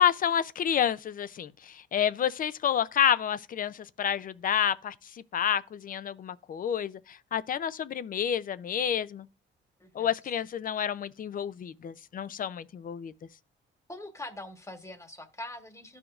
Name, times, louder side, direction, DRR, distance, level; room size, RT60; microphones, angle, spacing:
voice 1, 0.0-4.9 5.3-9.3 9.9-13.1, left 9 dB, 45° left, 0.4 m, -29 dB
voice 2, 13.9-16.0, left 1 dB, 15° left, 1.2 m, -43 dB
12.5 x 4.9 x 2.4 m
cardioid pair, 90°, 20 cm